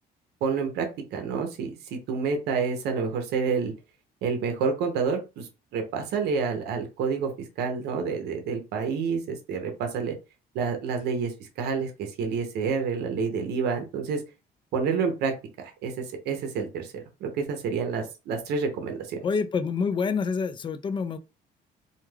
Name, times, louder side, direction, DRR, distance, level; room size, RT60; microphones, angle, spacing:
voice 1, 0.4-3.7 4.2-7.3 7.6-10.2 10.5-14.2 14.7-19.2, right 5 dB, 75° right, 0.7 m, -29 dB
voice 2, 19.2-21.2, left 5 dB, 30° left, 0.3 m, -27 dB
2.3 x 2.2 x 3.2 m
cardioid pair, 110°, 17 cm